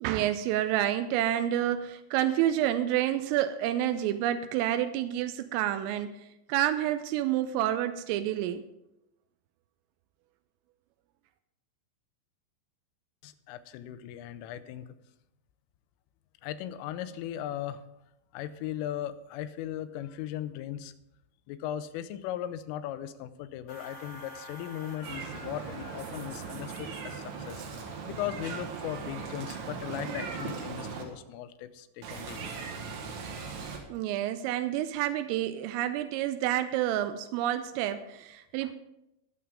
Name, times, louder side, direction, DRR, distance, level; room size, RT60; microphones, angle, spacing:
voice 1, 0.0-8.6 33.9-38.7, right 12 dB, 85° right, 10 dB, 3.2 m, -29 dB
voice 2, 13.2-15.0 16.4-17.8 18.3-20.9 21.5-32.5, left 11 dB, 85° left, 12 dB, 3.2 m, -38 dB
sound 1, 23.7-28.2, left 2 dB, 60° left, 2.1 m, -49 dB
Meow, 25.0-31.0 32.0-33.8, right 5 dB, 70° right, 3.8 m, -39 dB
20.5 x 7.0 x 3.8 m, 0.87 s
omnidirectional pair, 5.8 m